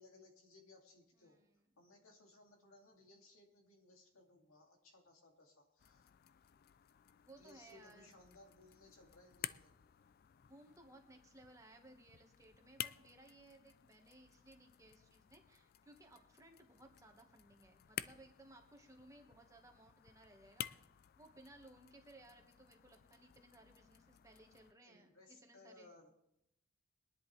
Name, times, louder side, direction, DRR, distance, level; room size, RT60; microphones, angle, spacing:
voice 1, 0.0-1.4 1.8-6.1 7.4-9.7 24.8-26.1, left 2 dB, 75° left, 1 dB, 2.5 m, -63 dB
voice 2, 1.1-1.7 7.2-8.1 10.4-20.7 21.2-25.9, right 2 dB, 15° right, 3 dB, 1.5 m, -61 dB
sound 1, 5.8-24.7, left 11 dB, 45° left, 0.4 m, -53 dB
22.0 x 10.5 x 3.3 m, 0.83 s
head